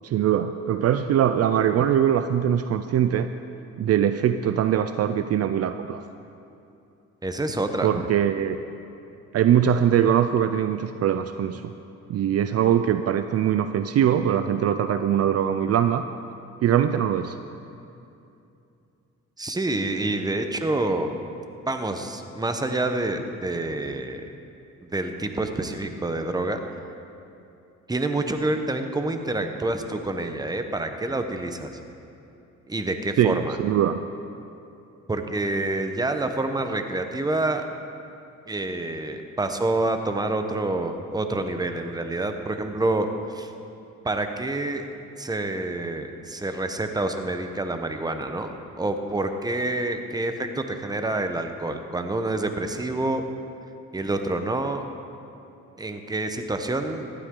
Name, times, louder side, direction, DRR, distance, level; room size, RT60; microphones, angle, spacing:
voice 1, 0.0-3.3 3.8-6.0 7.8-8.6 9.3-11.7 12.1-16.0 16.6-17.4 33.2-34.0, right 9 dB, 55° right, 10 dB, 0.5 m, -22 dB
voice 2, 7.2-8.1 19.4-21.1 21.7-24.2 24.8-26.6 27.9-31.8 32.7-33.6 35.1-37.6 38.5-43.1 43.3-43.5 44.0-44.9 45.2-48.5 48.8-53.2 53.9-54.8 55.8-57.1, right 2 dB, 15° right, 6 dB, 0.9 m, -27 dB
15.0 x 12.0 x 3.8 m, 2.7 s
cardioid pair, 90°, 30 cm